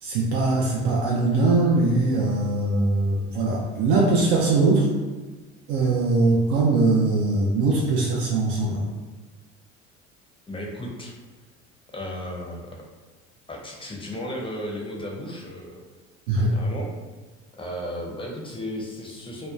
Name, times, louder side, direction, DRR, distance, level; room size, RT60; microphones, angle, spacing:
voice 1, 0.0-4.9 5.7-8.8 16.3-16.5, right 3 dB, 60° right, -4 dB, 0.6 m, -21 dB
voice 2, 10.5-11.1 11.9-12.7 13.5-15.8 16.5-16.9 17.5-19.5, equal, 15° left, -1 dB, 0.5 m, -34 dB
2.9 x 2.1 x 2.3 m, 1.3 s
hypercardioid pair, 75°, 36 cm